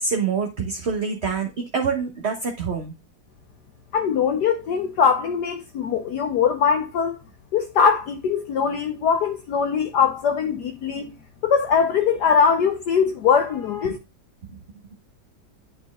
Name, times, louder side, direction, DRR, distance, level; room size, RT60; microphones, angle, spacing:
voice 1, 0.0-2.9 14.5-14.6, right 5 dB, 40° right, 1.3 m, -26 dB
voice 2, 3.9-7.2 7.5-11.1 11.4-14.0, left 6 dB, 65° left, 1.3 m, -21 dB
9.0 x 5.3 x 3.5 m
omnidirectional pair, 2.1 m